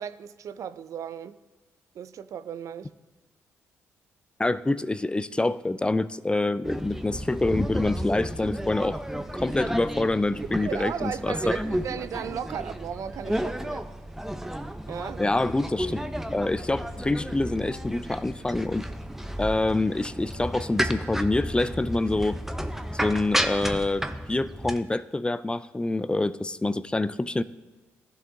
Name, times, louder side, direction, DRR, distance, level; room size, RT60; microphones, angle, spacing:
voice 1, 0.0-1.3 1.9-2.9 10.6-13.9 14.9-15.2, right 8 dB, 65° right, 0.4 m, -35 dB
voice 2, 4.4-11.5 15.2-16.0 16.3-18.8 19.4-22.4 23.0-27.4, left 2 dB, 15° left, 0.4 m, -26 dB
sound 1, 6.6-24.8, equal, 5° right, 0.7 m, -32 dB
15.0 x 7.0 x 2.8 m
supercardioid pair, 50°, 6 cm